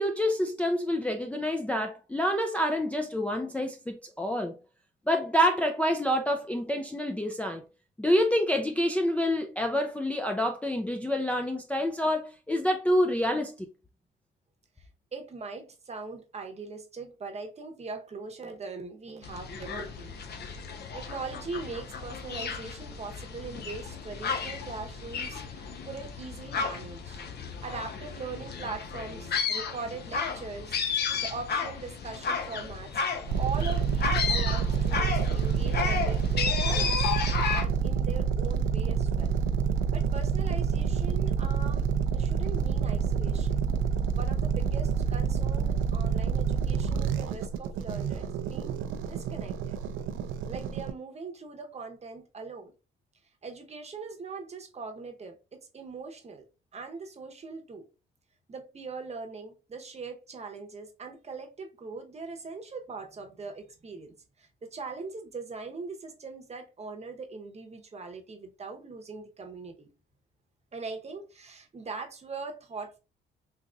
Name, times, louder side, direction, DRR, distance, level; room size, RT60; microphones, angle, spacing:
voice 1, 0.0-4.6 5.1-7.6 8.0-13.7, equal, 5° left, 0.4 m, -27 dB
voice 2, 14.8-20.3 20.9-27.2 27.6-30.8 31.2-33.1 33.4-37.1 37.5-39.3 39.9-43.6 44.1-48.8 49.1-49.8 50.5-52.7 53.4-56.4 56.7-57.8 58.5-69.9 70.7-73.0, right 4 dB, 35° right, 0.8 m, -41 dB
sound 1, 19.2-37.6, left 6 dB, 55° left, 0.7 m, -33 dB
sound 2, 33.3-50.9, right 7 dB, 80° right, 0.4 m, -28 dB
3.8 x 2.9 x 2.3 m
cardioid pair, 90°, 20 cm